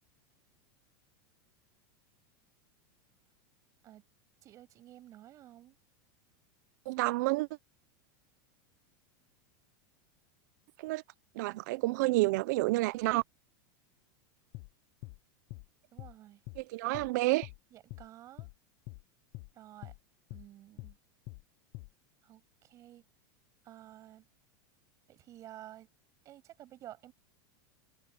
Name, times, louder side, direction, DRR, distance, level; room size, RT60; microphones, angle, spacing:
voice 1, 4.4-5.8 15.9-16.4 17.7-18.5 19.5-19.9 20.3-21.0 22.2-23.0 23.6-24.3 25.1-25.9 26.2-27.1, right 13 dB, 25° right, 6.9 m, -52 dB
voice 2, 6.9-7.5 10.8-11.0 11.4-13.2 16.6-17.5, right 21 dB, 50° right, 0.5 m, -29 dB
sound 1, 14.5-14.7 15.0-15.2 15.5-15.7 16.0-16.1 16.5-16.6 16.9-17.1 17.4-17.6 17.9-18.1 18.4-18.5 18.9-19.0 19.3-19.5 19.8-20.0 20.3-20.5 20.8-20.9 21.3-21.4 21.7-21.9, left 24 dB, 35° left, 0.4 m, -45 dB
supercardioid pair, 170°, 12 cm